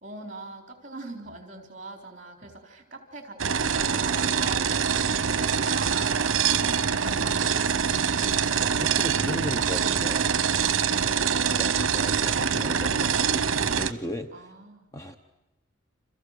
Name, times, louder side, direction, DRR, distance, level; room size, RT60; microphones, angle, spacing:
voice 1, 0.0-8.0 10.8-11.4 14.3-14.9, right 3 dB, 35° right, 4 dB, 4.0 m, -41 dB
sound 1, 3.4-13.9, right 7 dB, 70° right, 0.9 m, -24 dB
voice 2, 8.3-10.3 11.5-13.5 13.7-14.5 14.9-15.2, equal, 15° left, 7 dB, 1.0 m, -36 dB
29.5 x 27.5 x 6.7 m, 0.95 s
head